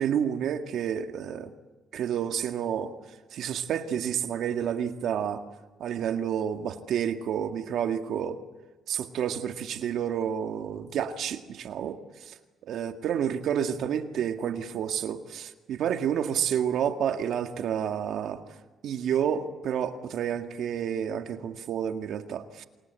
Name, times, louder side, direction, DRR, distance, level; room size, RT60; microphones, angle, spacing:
voice 1, 0.0-1.5 1.9-2.9 3.3-5.4 5.8-8.4 8.9-12.4 12.6-18.4 18.8-22.6, right 8 dB, 75° right, 6 dB, 1.9 m, -30 dB
28.0 x 25.0 x 8.2 m, 1.2 s
cardioid pair, 90°, 0 cm